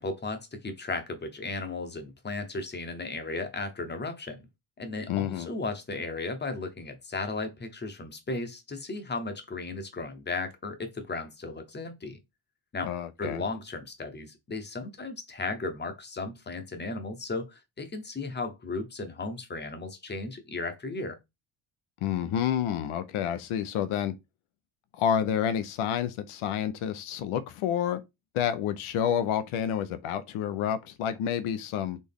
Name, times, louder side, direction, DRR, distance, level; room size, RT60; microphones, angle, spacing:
voice 1, 0.0-4.4 4.8-12.2 12.7-12.9 13.2-21.2, left 3 dB, 20° left, 0.8 m, -35 dB
voice 2, 5.1-5.5 12.8-13.4 22.0-24.1 24.9-28.0 28.3-32.0, left 9 dB, 80° left, 0.7 m, -29 dB
4.2 x 3.1 x 3.5 m
cardioid pair, 145°, 49 cm